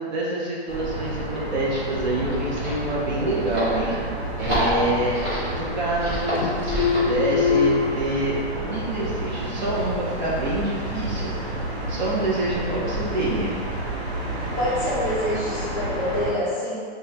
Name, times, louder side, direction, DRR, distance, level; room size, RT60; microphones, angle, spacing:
voice 1, 0.0-4.0 4.4-5.2 5.5-8.3 8.6-13.5, right 1 dB, 45° right, -6 dB, 0.7 m, -27 dB
sound 1, 0.7-16.3, right 1 dB, 70° right, 1.2 m, -30 dB
sound 2, 2.1-7.1, equal, 20° right, 1.1 m, -30 dB
sound 3, 3.9-4.9 5.2-6.1 6.3-8.0, left 6 dB, 85° left, 0.5 m, -25 dB
voice 2, 4.5-4.8 14.5-16.8, left 1 dB, 15° left, -10 dB, 0.6 m, -26 dB
4.7 x 2.3 x 2.8 m, 2.2 s
hypercardioid pair, 175°, 33 cm